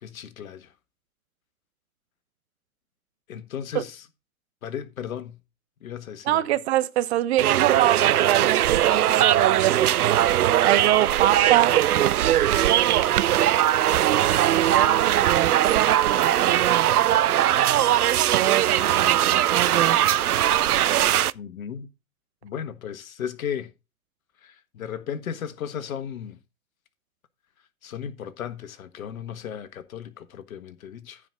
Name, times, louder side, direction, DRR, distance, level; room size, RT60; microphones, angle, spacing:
voice 1, 0.0-0.7 3.3-4.0 4.6-5.4 5.8-6.5 21.3-21.9 22.4-23.7 24.4-26.4 27.8-31.2, left 8 dB, 65° left, 1.5 m, -35 dB
voice 2, 6.2-11.7 12.2-13.1 13.9-16.9 18.3-20.0, right 14 dB, 45° right, 1.0 m, -25 dB
sound 1, 7.4-21.3, right 12 dB, 80° right, 0.6 m, -20 dB
14.5 x 5.1 x 3.8 m
figure-of-eight pair, 110°, 44 cm